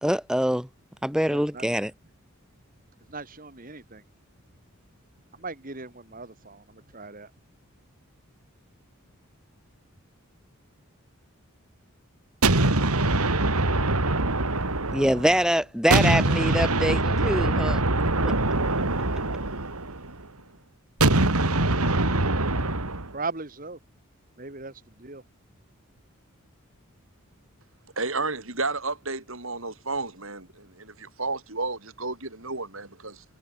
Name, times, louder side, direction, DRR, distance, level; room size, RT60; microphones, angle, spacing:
voice 1, 0.0-0.7 1.0-1.9 14.9-17.8 18.2-18.3, equal, 5° right, 1.9 m, -24 dB
voice 2, 1.3-1.7 3.1-4.0 5.4-7.3 23.1-23.8 24.4-25.2, right 3 dB, 40° right, 2.0 m, -38 dB
sound 1, 12.4-15.4 15.9-20.2 21.0-23.1, right 2 dB, 90° right, 3.5 m, -23 dB
voice 3, 28.0-33.2, right 3 dB, 65° right, 6.8 m, -32 dB
head